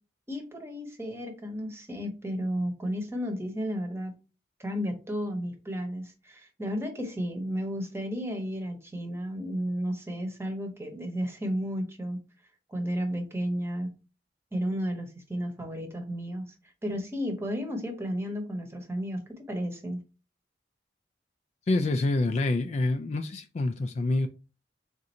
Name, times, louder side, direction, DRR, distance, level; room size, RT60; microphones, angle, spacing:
voice 1, 0.3-4.1 4.6-12.2 12.7-13.9 14.5-16.5 16.8-19.2 19.5-20.0, equal, 15° right, 0.9 m, -33 dB
voice 2, 21.7-24.3, left 2 dB, 40° left, 0.3 m, -27 dB
3.7 x 2.6 x 4.2 m
head